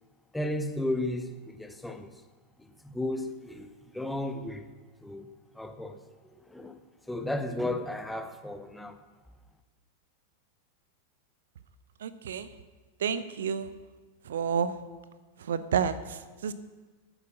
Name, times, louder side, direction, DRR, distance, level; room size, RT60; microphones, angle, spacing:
voice 1, 0.3-2.1 2.6-4.7 5.0-5.3 5.5-6.8 7.1-9.0, left 1 dB, 5° left, 1.0 m, -34 dB
voice 2, 12.0-12.5 13.0-13.7 14.2-14.7 15.4-16.5, right 7 dB, 60° right, 0.7 m, -30 dB
12.0 x 9.1 x 6.1 m
figure-of-eight pair, 90°, 0 cm